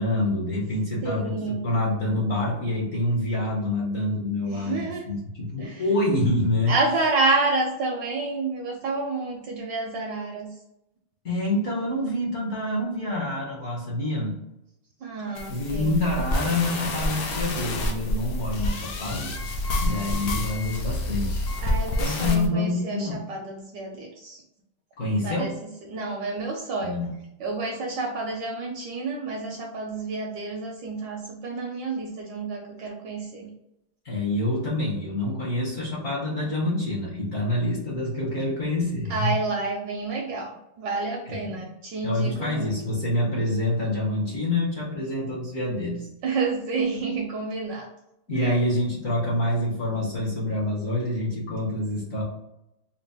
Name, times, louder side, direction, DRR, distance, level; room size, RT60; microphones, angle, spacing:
voice 1, 0.0-1.3 1.6-6.7 11.2-14.4 15.5-19.3 19.8-21.5 22.0-23.2 25.0-25.5 26.8-27.1 34.0-39.3 41.3-41.6 42.0-46.1 48.3-52.2, left 1 dB, 50° left, -5 dB, 1.1 m, -26 dB
voice 2, 1.0-1.7 4.5-5.1 5.6-5.9 6.7-10.5 15.0-16.0 21.6-24.4 25.2-27.0 27.4-33.5 39.1-42.9 46.2-47.9 48.4-48.6, right 3 dB, 75° right, 1 dB, 1.1 m, -29 dB
sound 1, 15.3-22.5, left 1 dB, 75° left, 0.8 m, -28 dB
4.1 x 2.1 x 3.4 m, 0.87 s
omnidirectional pair, 2.3 m